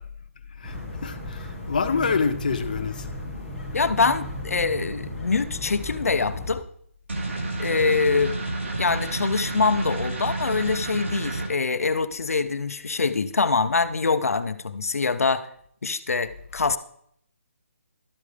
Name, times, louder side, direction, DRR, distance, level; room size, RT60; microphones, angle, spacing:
voice 1, 0.5-3.1, left 5 dB, 35° left, 0.6 m, -27 dB
sound 1, 0.6-6.5, left 1 dB, 5° right, 1.2 m, -35 dB
voice 2, 3.7-6.6 7.6-8.4 8.8-15.5 15.8-16.8, left 4 dB, 90° left, 0.7 m, -24 dB
sound 2, 7.1-11.5, right 2 dB, 55° right, 1.8 m, -30 dB
12.0 x 8.5 x 3.4 m
hypercardioid pair, 180°, 8 cm